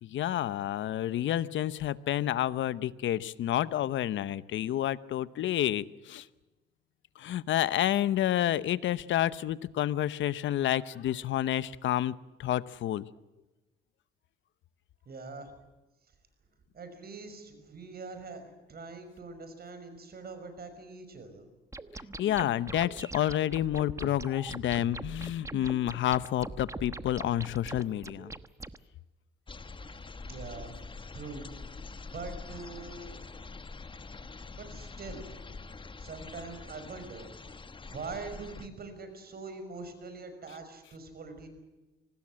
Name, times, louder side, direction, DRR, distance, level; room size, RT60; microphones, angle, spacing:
voice 1, 0.0-6.3 7.2-12.1 12.4-13.1 22.2-28.3, left 12 dB, 75° left, 17 dB, 0.9 m, -29 dB
voice 2, 15.1-15.5 16.7-21.5 30.2-30.7 31.1-31.5 32.0-33.2 34.6-35.4 36.0-37.3 37.8-41.5, right 4 dB, 50° right, 8 dB, 5.8 m, -43 dB
sound 1, 21.7-28.8, right 2 dB, 15° right, 1.1 m, -42 dB
sound 2, 29.5-38.7, left 4 dB, 25° left, 1.2 m, -45 dB
24.5 x 19.0 x 7.6 m, 1.1 s
cardioid pair, 90°, 20 cm